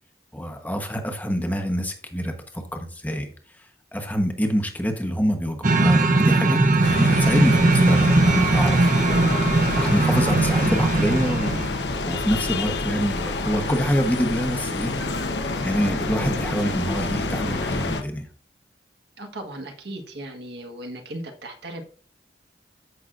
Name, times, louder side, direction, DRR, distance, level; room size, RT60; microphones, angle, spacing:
voice 1, 0.3-3.3 3.9-8.9 9.8-11.6 12.0-18.3, equal, 10° left, 1.1 m, -26 dB
sound 1, 5.6-11.8, right 2 dB, 45° right, 0.8 m, -19 dB
sound 2, 6.8-18.0, left 3 dB, 75° left, 1.0 m, -28 dB
voice 2, 8.7-9.4 19.2-21.8, right 1 dB, 70° right, 1.5 m, -37 dB
14.5 x 5.9 x 2.6 m
head